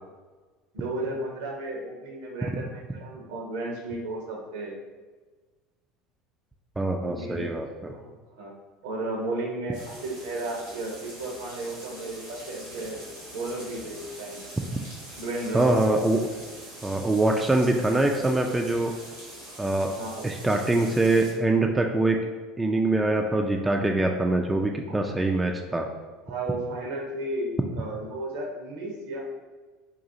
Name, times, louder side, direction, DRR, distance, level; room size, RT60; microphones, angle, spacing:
voice 1, 0.7-4.7 7.1-7.5 7.9-8.1 8.4-8.5 8.8-13.0 13.3-14.5 15.2-15.8 19.9-20.3 26.2-29.2, right 2 dB, 70° right, -1 dB, 0.7 m, -33 dB
voice 2, 6.8-7.9 15.5-16.2 16.8-18.9 19.6-19.9 20.2-22.2 22.6-25.9, right 2 dB, 15° right, 2 dB, 0.3 m, -24 dB
sound 1, 9.7-21.3, right 1 dB, 90° right, 1.3 m, -44 dB
3.9 x 2.4 x 2.7 m, 1.3 s
hypercardioid pair, 75°, 0 cm